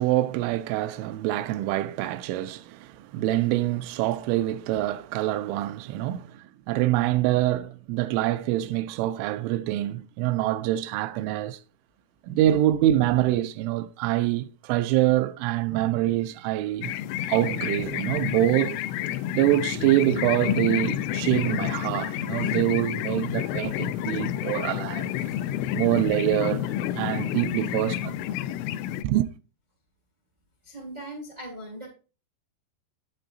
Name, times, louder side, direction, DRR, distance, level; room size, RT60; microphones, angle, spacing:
voice 1, 0.0-11.6 12.2-16.9 17.3-18.8 19.3-25.1 25.7-26.7 27.0-28.2 29.0-29.3, right 14 dB, 85° right, 3.0 m, -25 dB
sound 1, 16.8-29.0, left 12 dB, 90° left, 3.0 m, -29 dB
voice 2, 30.6-31.9, right 1 dB, 55° right, 0.9 m, -40 dB
8.9 x 7.7 x 2.5 m
omnidirectional pair, 5.4 m